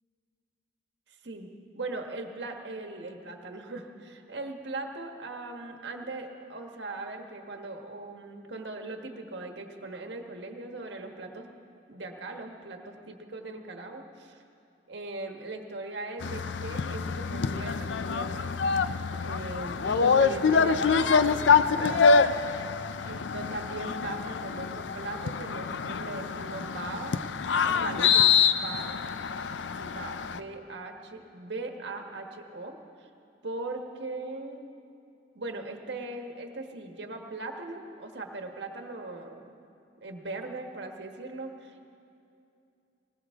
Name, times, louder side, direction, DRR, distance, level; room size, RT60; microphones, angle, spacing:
voice 1, 1.1-1.5 1.7-11.5 11.9-14.4 14.9-18.5 19.2-22.2 23.0-27.2 27.6-29.0 29.7-33.1 33.4-34.7 35.3-39.6 40.0-41.8, right 2 dB, 75° right, 4 dB, 1.3 m, -39 dB
sound 1, 16.2-30.4, left 5 dB, 85° left, 0.5 m, -26 dB
20.0 x 19.0 x 3.6 m, 2.6 s
head